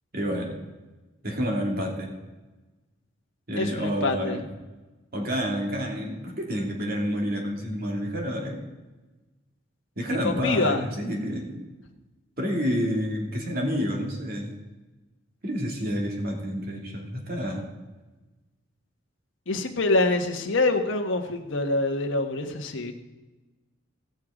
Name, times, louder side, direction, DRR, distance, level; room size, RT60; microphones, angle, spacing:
voice 1, 0.1-0.5 1.2-2.1 3.5-4.4 5.1-8.7 10.0-11.7 12.4-14.6 15.4-17.6, equal, 50° right, 1 dB, 2.6 m, -29 dB
voice 2, 3.6-4.4 10.2-10.8 19.5-22.9, left 2 dB, 75° left, 4 dB, 1.3 m, -25 dB
17.0 x 6.7 x 4.9 m, 1.2 s
head